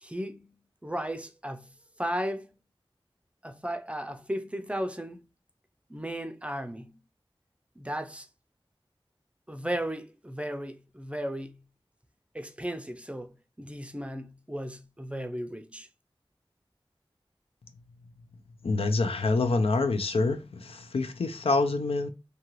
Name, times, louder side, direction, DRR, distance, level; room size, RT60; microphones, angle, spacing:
voice 1, 0.0-1.7 2.0-2.5 3.4-5.2 5.9-7.0 7.8-8.3 9.5-11.6 12.3-15.9, equal, 10° right, 0.4 m, -35 dB
voice 2, 18.6-22.1, left 3 dB, 85° left, 0.4 m, -26 dB
2.8 x 2.4 x 3.0 m
wide cardioid pair, 55°, 10 cm